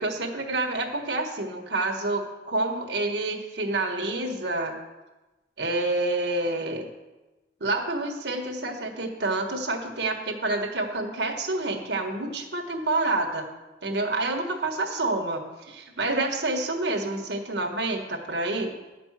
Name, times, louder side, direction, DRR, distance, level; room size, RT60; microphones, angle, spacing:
voice 1, 0.0-4.7 5.6-6.8 7.6-13.5 13.8-18.7, right 2 dB, 70° right, 3 dB, 1.5 m, -28 dB
11.0 x 5.3 x 7.5 m, 1.1 s
head